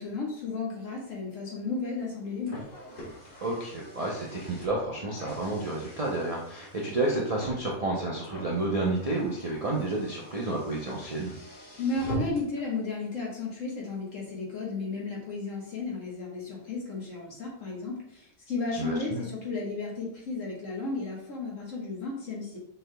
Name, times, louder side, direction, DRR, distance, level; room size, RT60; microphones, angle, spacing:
voice 1, 0.0-2.6 11.8-22.6, left 3 dB, 60° left, -3 dB, 1.6 m, -34 dB
Car, 2.0-12.6, left 1 dB, 35° left, 1.9 m, -43 dB
voice 2, 3.4-11.3 18.7-19.2, right 2 dB, 45° right, -4 dB, 0.5 m, -30 dB
6.1 x 3.3 x 2.2 m, 0.69 s
omnidirectional pair, 1.5 m